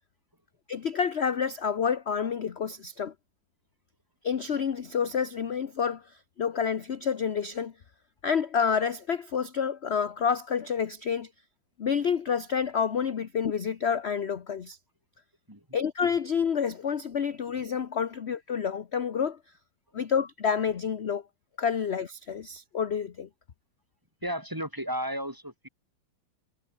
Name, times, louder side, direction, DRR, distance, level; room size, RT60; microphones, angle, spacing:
voice 1, 0.7-3.1 4.2-6.0 6.4-7.7 8.2-11.3 11.8-14.8 15.7-19.4 19.9-21.2 21.6-23.3, left 7 dB, 45° left, 1.0 m, -28 dB
voice 2, 24.2-25.7, equal, 10° right, 2.3 m, -34 dB
omnidirectional pair, 2.0 m